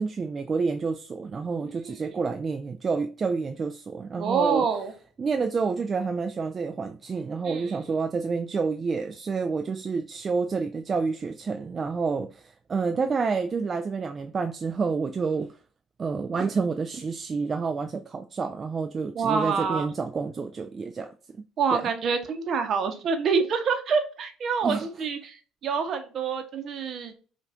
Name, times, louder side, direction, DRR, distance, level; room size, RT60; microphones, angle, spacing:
voice 1, 0.0-4.6 5.2-15.5 16.0-21.1 21.7-21.8 24.6-24.9, right 4 dB, 35° right, 0.4 m, -29 dB
voice 2, 1.6-2.2 4.2-4.9 7.4-7.8 19.1-19.9 21.6-27.1, right 5 dB, 55° right, 0.9 m, -27 dB
5.4 x 2.5 x 2.4 m
hypercardioid pair, 65°, 0 cm